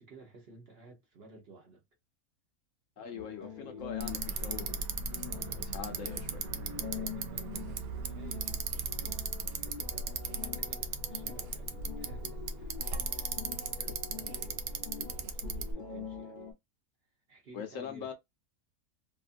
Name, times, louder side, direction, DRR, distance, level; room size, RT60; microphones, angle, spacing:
voice 1, 0.0-1.8 3.0-4.1 5.3-13.8 14.1-16.4 17.3-18.1, right 3 dB, 50° right, 0.9 m, -55 dB
voice 2, 3.0-4.8 5.7-6.4 13.8-14.0 17.5-18.1, left 8 dB, 65° left, 0.9 m, -42 dB
sound 1, 3.2-16.5, left 7 dB, 40° left, 0.8 m, -45 dB
Bicycle, 4.0-15.7, right 5 dB, 80° right, 0.5 m, -37 dB
2.8 x 2.4 x 2.4 m
omnidirectional pair, 1.6 m